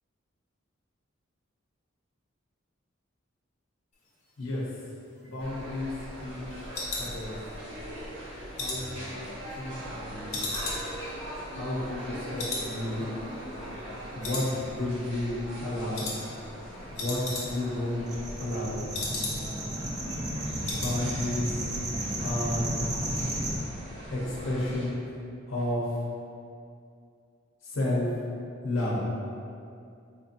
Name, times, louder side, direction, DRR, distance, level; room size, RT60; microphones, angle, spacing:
voice 1, 4.4-4.7 5.2-5.9 6.2-6.7 7.0-7.4 8.5-9.1 9.5-10.4 11.5-13.1 14.1-16.1 16.9-18.0 18.4-18.9 20.7-21.6 22.2-22.7 24.1-25.0 25.5-25.9 27.6-28.1 28.6-29.0, left 1 dB, 85° left, -6 dB, 0.7 m, -32 dB
sound 1, 5.0-7.8 8.2-9.9 10.3-12.1 12.4-12.7 13.0-13.1 13.6-14.0 14.2-15.0 15.3-15.6 15.9-16.2 16.5-16.6 16.8-17.8 18.1-19.7 20.0-20.1 20.4-21.0 21.3-21.5 21.8-21.9, left 2 dB, 35° left, 0.7 m, -36 dB
sound 2, 5.4-24.9, equal, 65° right, 1.0 m, -41 dB
sound 3, 18.1-23.6, right 1 dB, 20° right, 0.4 m, -33 dB
4.6 x 2.6 x 2.5 m, 2.4 s
head